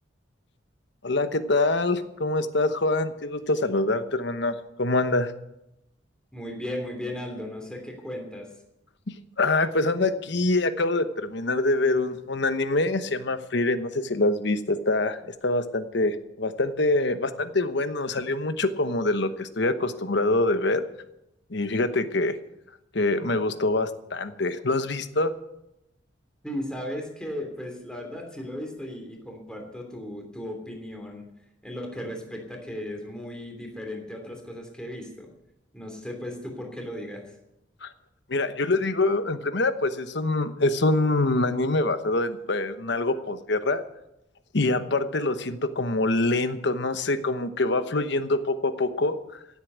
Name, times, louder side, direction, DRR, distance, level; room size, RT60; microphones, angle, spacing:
voice 1, 1.0-5.3 9.4-20.8 21.5-22.4 22.9-25.3 37.8-37.9 38.3-43.8 44.5-49.4, left 2 dB, 65° left, 10 dB, 1.0 m, -25 dB
voice 2, 6.3-8.5 26.4-31.2 31.6-35.3 35.7-37.2, left 1 dB, 5° left, 2 dB, 3.1 m, -36 dB
16.5 x 8.4 x 8.1 m, 0.86 s
head